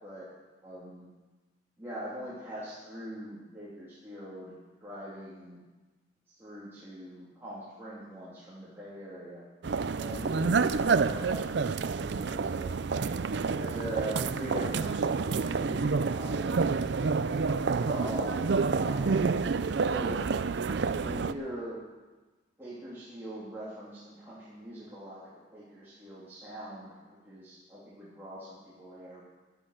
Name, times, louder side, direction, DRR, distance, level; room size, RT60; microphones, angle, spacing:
voice 1, 0.6-1.0 1.8-4.5 4.8-5.6 6.4-9.4 10.0-12.7 13.5-16.7 17.6-18.4 18.7-19.3 19.8-20.2 20.8-21.8 22.6-29.2, equal, 10° right, -11 dB, 3.0 m, -42 dB
sound 1, 9.6-21.3, right 4 dB, 60° right, 0.4 m, -28 dB
12.0 x 11.5 x 6.6 m, 1.2 s
head